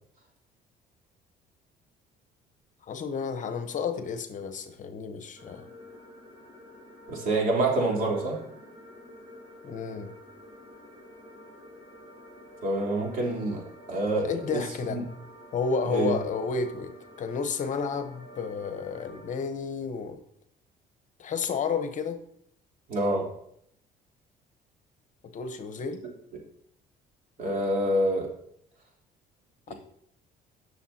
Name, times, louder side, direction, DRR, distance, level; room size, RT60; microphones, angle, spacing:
voice 1, 2.8-5.7 9.6-10.1 14.2-15.0 15.5-16.9 17.2-20.2 21.2-22.2 25.2-26.0 29.7-29.8, left 5 dB, 50° left, 8 dB, 1.0 m, -31 dB
sound 1, 5.4-19.3, left 1 dB, 25° right, 4.7 m, -49 dB
voice 2, 7.1-8.4 12.6-14.6 14.9-15.0 15.8-16.2 22.9-23.3 27.4-28.3 29.7-29.8, right 2 dB, 55° right, -2 dB, 3.4 m, -27 dB
18.0 x 6.5 x 2.8 m, 0.70 s
cardioid pair, 110°, 17 cm